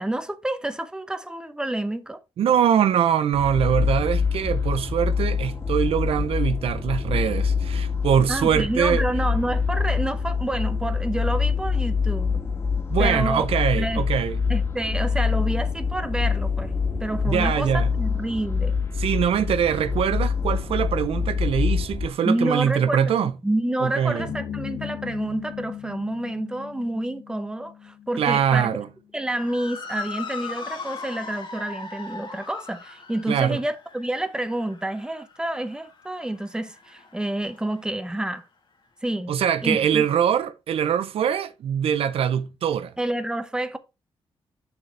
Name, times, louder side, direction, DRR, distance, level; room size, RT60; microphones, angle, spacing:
voice 1, 0.0-2.2 8.3-12.4 13.0-13.5 13.8-14.1 14.5-16.7 17.0-18.7 22.2-23.1 23.4-28.8 29.1-38.4 39.0-40.1 43.0-43.8, right 1 dB, 10° right, 0.8 m, -28 dB
voice 2, 2.4-9.0 12.9-14.4 17.2-17.9 19.0-23.3 23.8-24.3 28.2-28.9 33.3-33.6 39.3-42.9, right 8 dB, 80° right, 0.6 m, -23 dB
sound 1, 3.3-22.1, left 5 dB, 25° left, 1.9 m, -25 dB
sound 2, 24.2-28.6, left 9 dB, 85° left, 1.5 m, -37 dB
Motor vehicle (road) / Siren, 29.3-37.8, left 4 dB, 55° left, 1.7 m, -39 dB
7.0 x 6.6 x 3.3 m
cardioid pair, 105°, 10 cm